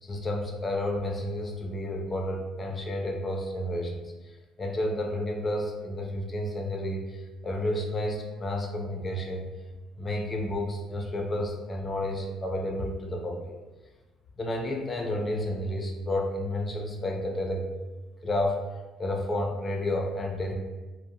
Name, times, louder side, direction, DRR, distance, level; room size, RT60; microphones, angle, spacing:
voice 1, 0.0-9.5 10.0-13.6 14.4-17.7 18.2-18.6 19.0-20.5, left 1 dB, 30° left, 1 dB, 0.5 m, -31 dB
2.6 x 2.1 x 2.8 m, 1.2 s
cardioid pair, 100°, 0 cm